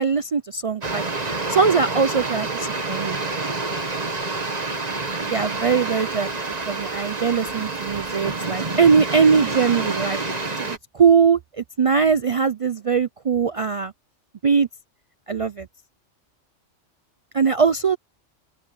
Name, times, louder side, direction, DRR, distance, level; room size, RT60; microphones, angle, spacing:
voice 1, 0.0-3.2 5.2-10.2 10.6-13.9 14.4-14.7 15.3-15.7 17.3-18.0, right 5 dB, 60° right, 0.3 m, -21 dB
sound 1, 0.8-10.8, right 3 dB, 35° right, 1.7 m, -28 dB
open air
omnidirectional pair, 1.2 m